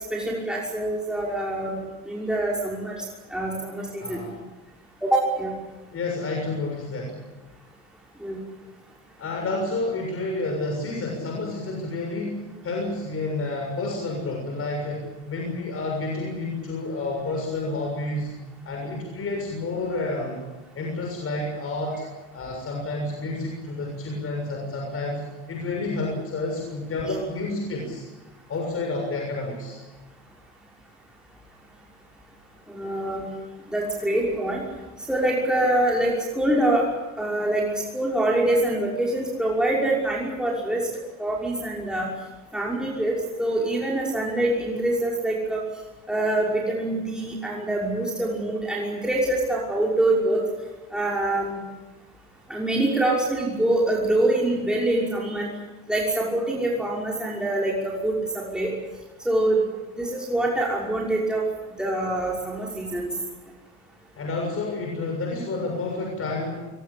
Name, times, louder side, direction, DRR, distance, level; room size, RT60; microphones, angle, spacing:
voice 1, 0.1-1.8 2.1-3.0 3.3-4.2 5.0-5.5 8.2-8.4 32.7-33.3 33.7-34.6 35.1-36.8 37.2-37.6 37.9-40.9 41.2-42.1 42.5-45.6 46.1-50.4 50.9-51.6 52.5-55.5 55.9-58.7 59.2-59.6 60.0-61.4 61.8-63.1, right 1 dB, ahead, -4 dB, 5.9 m, -25 dB
voice 2, 4.0-4.3 5.9-7.2 9.2-18.3 18.6-20.5 20.8-22.0 22.3-28.1 28.5-29.8 64.1-66.7, left 2 dB, 40° left, 1 dB, 6.9 m, -30 dB
22.5 x 21.0 x 8.7 m, 1.2 s
supercardioid pair, 90°, 35 cm